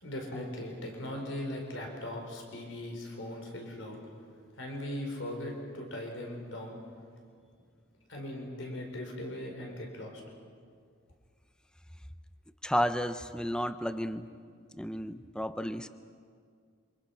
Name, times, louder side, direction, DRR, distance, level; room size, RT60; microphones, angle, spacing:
voice 1, 0.0-4.0 4.6-6.8 8.1-10.2, left 1 dB, 75° left, 1 dB, 4.7 m, -39 dB
voice 2, 12.6-14.3 14.7-15.9, equal, 5° left, 11 dB, 0.6 m, -32 dB
28.0 x 25.5 x 5.9 m, 2.1 s
head